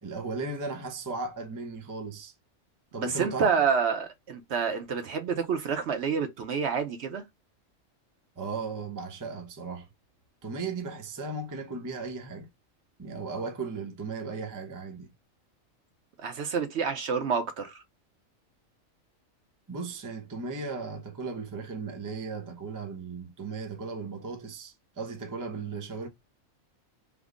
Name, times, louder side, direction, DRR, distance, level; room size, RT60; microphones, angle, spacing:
voice 1, 0.0-2.3 2.9-3.5 8.4-9.9 10.4-12.5 13.0-15.1 19.7-26.1, right 4 dB, 20° right, 0.5 m, -36 dB
voice 2, 3.0-7.2 16.2-17.8, right 6 dB, 65° right, 0.9 m, -28 dB
3.5 x 2.0 x 3.5 m
omnidirectional pair, 1.4 m